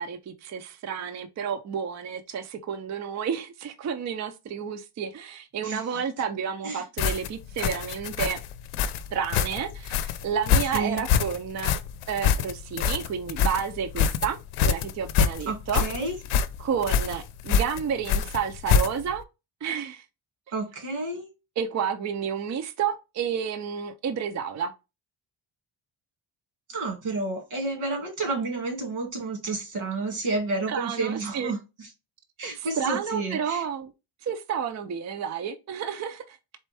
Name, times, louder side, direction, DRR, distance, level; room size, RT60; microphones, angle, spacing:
voice 1, 0.0-8.4 9.1-11.8 12.1-14.4 14.7-15.9 16.6-19.2 19.6-20.0 21.6-24.7 30.7-31.5 32.4-33.9 34.2-36.4, right 7 dB, 35° right, 0.4 m, -30 dB
sound 1, 7.0-19.2, left 7 dB, 85° left, 0.6 m, -25 dB
voice 2, 10.7-11.0 15.5-16.1 20.5-21.3 26.7-31.9 32.4-33.6, right 3 dB, 80° right, 2.3 m, -30 dB
4.3 x 3.5 x 3.3 m
wide cardioid pair, 170°, 49 cm